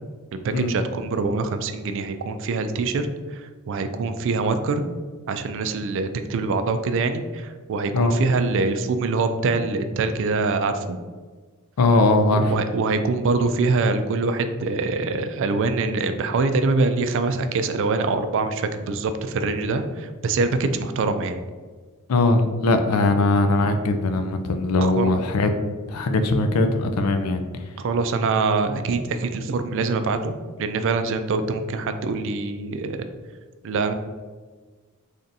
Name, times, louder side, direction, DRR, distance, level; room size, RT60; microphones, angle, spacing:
voice 1, 0.3-4.8 5.3-11.0 12.5-21.4 24.8-25.1 27.8-33.1 33.6-33.9, right 3 dB, 60° right, 9 dB, 0.3 m, -24 dB
voice 2, 11.8-12.5 22.1-25.5 25.9-27.4, left 2 dB, 80° left, 7 dB, 0.4 m, -20 dB
3.4 x 2.6 x 3.9 m, 1.4 s
head